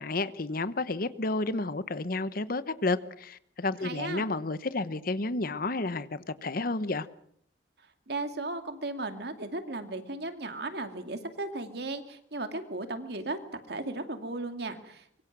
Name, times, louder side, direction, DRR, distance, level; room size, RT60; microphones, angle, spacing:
voice 1, 0.0-7.1, left 2 dB, 50° left, 1.0 m, -31 dB
voice 2, 3.8-4.3 8.1-13.4 13.7-15.2, right 2 dB, 60° right, 2.5 m, -36 dB
24.5 x 23.5 x 6.2 m
head